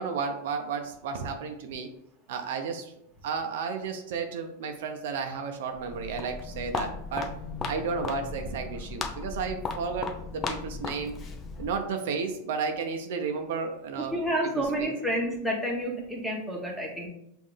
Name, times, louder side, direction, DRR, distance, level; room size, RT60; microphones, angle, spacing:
voice 1, 0.0-1.9 2.3-2.9 3.2-7.3 7.7-11.2 11.6-14.1 14.8-14.9, right 5 dB, 70° right, 5 dB, 0.6 m, -32 dB
Walk footsteps, 5.8-11.9, left 4 dB, 25° left, 0.5 m, -36 dB
voice 2, 14.0-17.1, right 1 dB, ahead, -3 dB, 1.2 m, -29 dB
5.5 x 2.6 x 3.3 m, 0.76 s
hypercardioid pair, 125°, 0 cm